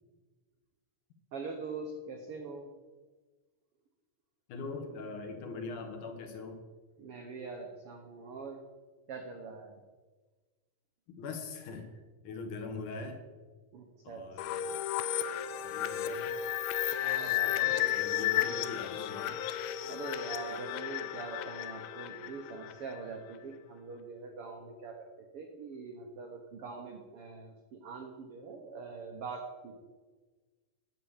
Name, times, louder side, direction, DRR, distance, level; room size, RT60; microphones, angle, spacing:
voice 1, 1.3-2.7 7.0-8.6 9.1-9.8 13.7-14.6 17.0-17.7 19.8-25.1 25.3-29.7, right 4 dB, 90° right, 4 dB, 1.2 m, -43 dB
voice 2, 4.5-6.6 11.1-11.9 12.2-13.2 14.0-14.8 15.6-16.3 17.2-19.4, left 4 dB, 65° left, 3 dB, 2.8 m, -42 dB
sound 1, 14.4-23.0, left 12 dB, 85° left, 2.4 m, -33 dB
10.0 x 7.5 x 7.3 m, 1.3 s
omnidirectional pair, 4.1 m